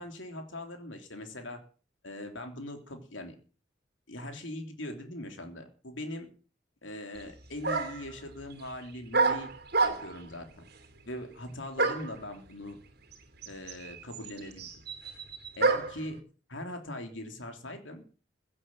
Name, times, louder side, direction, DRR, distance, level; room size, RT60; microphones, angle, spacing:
voice 1, 0.0-1.6 2.0-3.3 4.1-6.3 6.8-9.5 9.8-10.6 11.0-12.8 13.4-14.7 15.5-16.2 16.5-18.0, left 1 dB, 70° left, 5 dB, 3.4 m, -41 dB
sound 1, 7.2-7.3 7.6-8.1 9.1-10.3 11.8-12.2 13.1-13.2 13.4-16.0, right 3 dB, 55° right, 2.7 m, -28 dB
16.0 x 8.6 x 7.5 m, 0.39 s
head